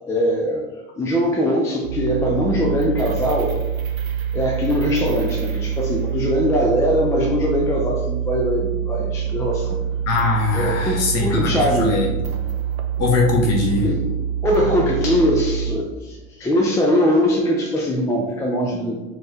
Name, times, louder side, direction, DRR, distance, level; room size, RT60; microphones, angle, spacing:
voice 1, 0.1-0.6 1.0-3.6 4.3-9.8 10.5-12.1 13.8-14.0 14.4-19.0, equal, 5° left, 0 dB, 0.4 m, -21 dB
sound 1, 1.8-15.8, right 8 dB, 85° right, 0.5 m, -25 dB
voice 2, 10.1-12.1 13.0-13.9, left 3 dB, 40° left, -1 dB, 1.5 m, -21 dB
4.3 x 3.7 x 3.2 m, 1.2 s
figure-of-eight pair, 85°, 41 cm